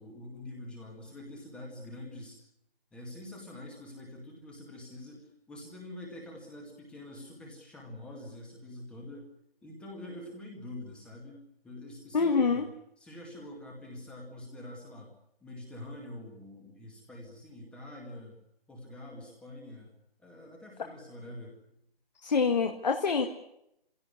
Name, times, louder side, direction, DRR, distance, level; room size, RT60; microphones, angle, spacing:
voice 1, 0.0-2.4 2.9-9.3 9.6-12.7 13.0-15.1 15.4-18.4 18.7-21.6, left 1 dB, 5° left, -1 dB, 2.1 m, -45 dB
voice 2, 12.1-12.7 22.2-23.3, left 5 dB, 45° left, 4 dB, 1.8 m, -26 dB
24.5 x 16.5 x 9.7 m, 0.78 s
figure-of-eight pair, 165°, 30 cm